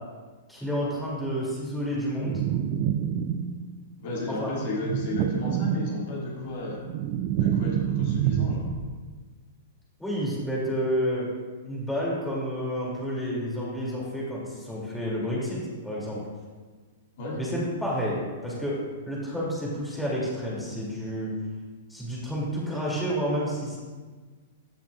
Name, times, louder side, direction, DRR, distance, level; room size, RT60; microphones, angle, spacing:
voice 1, 0.5-2.4 4.4-4.5 10.0-11.3 11.6-16.2 17.4-18.8 19.1-21.3 21.9-23.8, equal, 5° left, -6 dB, 2.6 m, -30 dB
sound 1, 2.2-3.8 4.8-6.3 6.6-9.0, right 9 dB, 40° right, 0.4 m, -27 dB
voice 2, 4.0-6.8 7.4-8.7 17.2-17.4, left 1 dB, 50° left, -4 dB, 2.2 m, -33 dB
14.5 x 5.8 x 2.4 m, 1.4 s
figure-of-eight pair, 105°, 0 cm